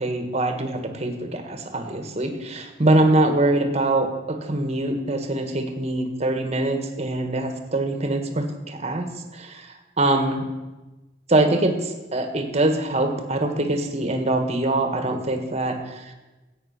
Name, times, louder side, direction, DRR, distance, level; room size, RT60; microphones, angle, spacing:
voice 1, 0.0-9.7 10.0-10.4 11.3-16.1, right 2 dB, 35° right, 6 dB, 1.4 m, -23 dB
13.5 x 8.9 x 5.8 m, 1.1 s
head